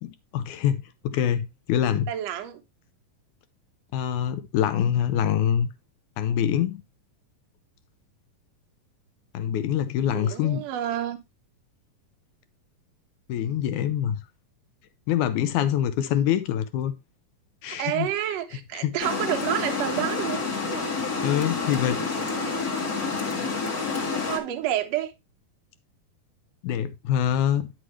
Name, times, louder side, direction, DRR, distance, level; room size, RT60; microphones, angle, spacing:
voice 1, 0.0-2.1 3.9-5.7 6.2-6.8 9.3-10.6 13.3-14.2 15.1-16.9 17.6-18.1 18.7-19.0 21.2-22.2 26.6-27.7, left 10 dB, 75° left, 1.9 m, -25 dB
voice 2, 2.1-2.6 10.1-11.2 17.7-20.9 21.6-21.7 22.1-22.7 24.2-25.1, right 11 dB, 75° right, 1.5 m, -30 dB
Water, 19.0-24.4, left 4 dB, 35° left, 1.5 m, -28 dB
9.8 x 6.1 x 3.1 m
omnidirectional pair, 4.1 m